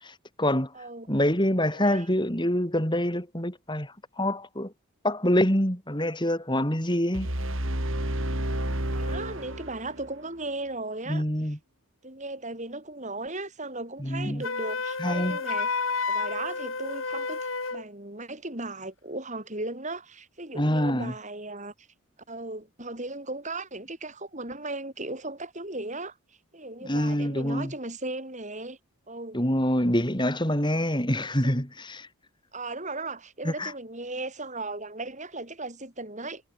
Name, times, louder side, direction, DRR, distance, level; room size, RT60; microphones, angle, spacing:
voice 1, 0.0-0.7 1.1-4.7 5.0-7.3 11.1-11.6 14.0-14.4 15.0-15.4 20.5-21.1 26.8-27.7 29.3-32.1 33.4-33.7, left 1 dB, 20° left, 5.7 m, -26 dB
voice 2, 0.7-1.1 1.7-2.0 8.9-11.5 12.0-15.7 16.1-21.7 22.3-26.1 26.5-28.8 29.1-29.4 31.4-31.5 32.5-36.4, right 2 dB, 35° right, 7.6 m, -37 dB
sound 1, 7.1-10.2, right 1 dB, 65° right, 7.6 m, -30 dB
Wind instrument woodwind instrument, 14.4-17.8, left 4 dB, 65° left, 3.4 m, -30 dB
head